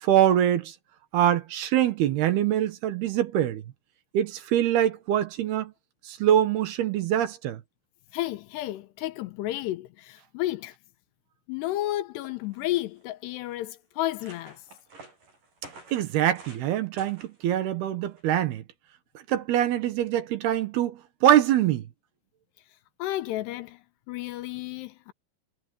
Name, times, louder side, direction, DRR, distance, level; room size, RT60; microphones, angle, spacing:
voice 1, 0.0-0.7 1.1-3.6 4.1-5.7 6.1-7.6 15.9-18.6 19.3-21.8, right 11 dB, 70° right, 3.1 m, -24 dB
voice 2, 8.1-10.8 11.5-14.6 23.0-25.1, left 15 dB, 80° left, 2.8 m, -32 dB
sound 1, 12.1-12.2 12.4-13.0 13.6-13.7 14.0-16.7 17.0-17.4 18.2-18.4, right 3 dB, 50° right, 9.5 m, -50 dB
omnidirectional pair, 5.1 m